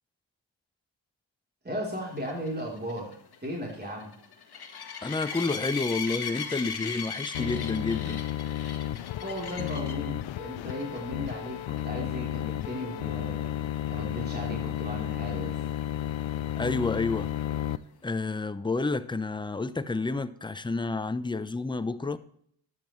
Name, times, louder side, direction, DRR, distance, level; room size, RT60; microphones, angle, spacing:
voice 1, 1.6-3.2 3.4-4.2 9.2-13.6 13.9-15.6, equal, 20° right, 3.7 m, -36 dB
sound 1, 2.2-10.1 10.7-11.0 11.3-11.4 11.8-11.9 15.4-15.5, left 6 dB, 55° left, 1.5 m, -37 dB
voice 2, 5.0-8.2 16.6-17.3 18.0-22.2, left 3 dB, 10° left, 0.7 m, -30 dB
sound 2, 7.3-17.8, left 12 dB, 80° left, 0.6 m, -33 dB
13.5 x 9.2 x 3.2 m
cardioid pair, 75°, 46 cm